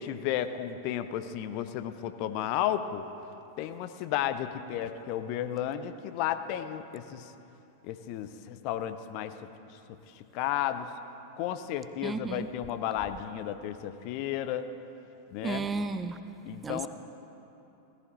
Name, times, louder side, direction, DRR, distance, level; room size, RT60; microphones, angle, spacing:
voice 1, 0.0-3.0 3.6-7.3 7.8-9.3 10.2-10.9 11.4-14.7 15.3-15.7 16.5-16.9, left 11 dB, 45° left, 11 dB, 0.6 m, -33 dB
voice 2, 12.0-12.5 15.4-16.2 16.6-16.9, right 4 dB, 15° right, 11 dB, 0.5 m, -33 dB
17.0 x 14.5 x 3.2 m, 2.9 s
figure-of-eight pair, 90°, 0 cm